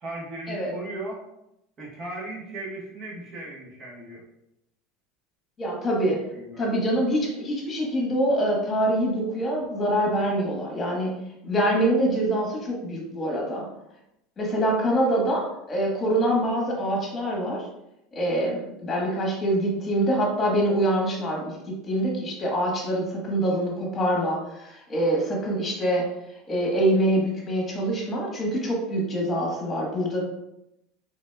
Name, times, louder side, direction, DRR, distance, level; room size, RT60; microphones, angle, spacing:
voice 1, 0.0-1.2 1.8-4.2 6.3-6.6, right 2 dB, 35° right, -2 dB, 1.2 m, -37 dB
voice 2, 5.6-6.2 6.6-11.1 11.4-13.6 14.4-17.7 18.1-21.6 21.8-26.1 26.5-30.2, right 1 dB, 20° left, -2 dB, 1.3 m, -25 dB
4.0 x 3.6 x 2.3 m, 0.86 s
supercardioid pair, 130°, 0 cm